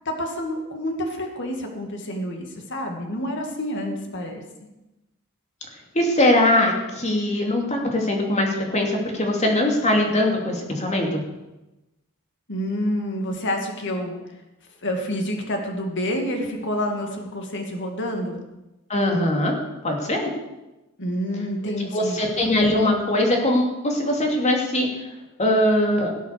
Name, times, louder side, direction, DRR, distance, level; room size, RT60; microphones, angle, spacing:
voice 1, 0.1-4.4 12.5-14.2 14.8-18.4 21.0-22.2, equal, 55° left, 3 dB, 2.4 m, -28 dB
voice 2, 5.9-11.2 18.9-19.5 19.8-20.3 21.9-24.9 25.4-26.1, left 1 dB, 30° left, 1 dB, 2.8 m, -21 dB
17.0 x 8.2 x 6.8 m, 1.0 s
head